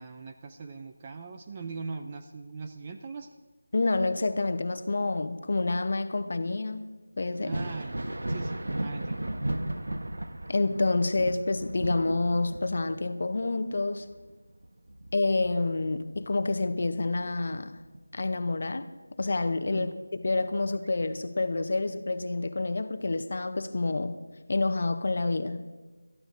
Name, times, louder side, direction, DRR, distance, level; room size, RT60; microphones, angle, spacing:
voice 1, 0.0-3.3 7.4-8.0 8.3-9.2 19.7-19.9, right 4 dB, 15° right, 5 dB, 0.3 m, -41 dB
voice 2, 3.7-6.9 7.2-7.6 10.5-14.1 15.1-17.8 18.1-18.8 19.2-24.2 24.5-25.6, left 3 dB, 35° left, 10 dB, 0.6 m, -28 dB
Thunder, 7.3-16.7 17.1-18.3 19.8-19.9 20.7-20.9, right 1 dB, 65° right, 0.9 m, -36 dB
22.5 x 13.0 x 2.5 m, 1.2 s
figure-of-eight pair, 180°, 0 cm